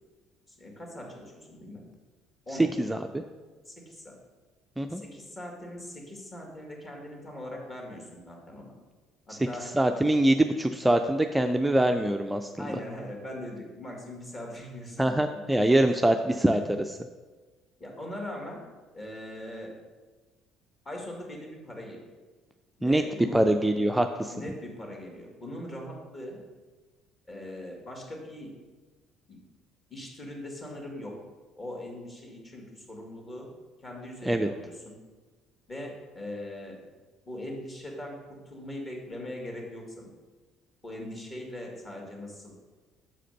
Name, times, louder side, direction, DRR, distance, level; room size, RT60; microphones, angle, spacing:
voice 1, 0.5-1.9 2.5-2.7 3.7-4.2 4.9-8.7 9.3-9.7 12.6-15.6 17.8-18.7 18.9-19.7 20.8-22.0 22.8-23.5 24.3-26.4 27.3-28.5 29.3-29.4 29.9-31.2 31.6-33.5 33.8-35.0 35.7-36.8 37.3-40.1 40.8-42.5, left 1 dB, 30° left, 0 dB, 2.2 m, -41 dB
voice 2, 2.8-3.2 4.8-5.0 9.3-9.4 9.7-12.7 15.0-17.0 22.8-23.0 23.3-24.3 34.2-34.5, right 1 dB, 10° right, 6 dB, 0.4 m, -24 dB
6.0 x 5.0 x 6.5 m, 1.3 s
figure-of-eight pair, 55°, 0 cm